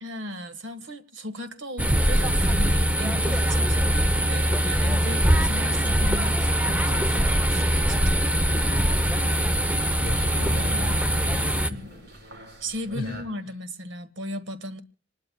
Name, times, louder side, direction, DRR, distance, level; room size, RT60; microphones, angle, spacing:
voice 1, 0.0-8.7 12.6-14.8, equal, 70° right, 1.6 m, -36 dB
sound 1, 1.8-11.7, equal, 10° right, 0.8 m, -22 dB
sound 2, 2.0-13.2, equal, 55° right, 5.3 m, -43 dB
voice 2, 10.0-11.7 12.9-13.2, left 1 dB, 50° left, 2.6 m, -37 dB
26.0 x 20.5 x 2.3 m
head